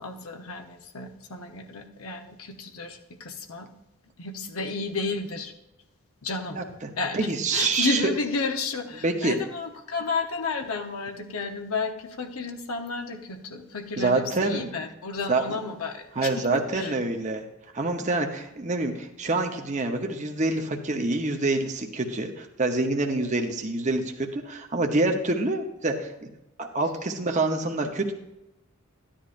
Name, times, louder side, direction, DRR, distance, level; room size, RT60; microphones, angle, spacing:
voice 1, 0.0-3.7 4.2-5.5 6.2-6.6 7.0-16.9, left 3 dB, 85° left, 5 dB, 1.0 m, -32 dB
voice 2, 7.1-8.1 9.0-9.4 14.0-14.7 15.3-15.6 16.2-17.4 17.7-26.3 26.6-28.1, right 2 dB, 35° right, 3 dB, 0.8 m, -26 dB
13.0 x 10.0 x 2.6 m, 0.93 s
head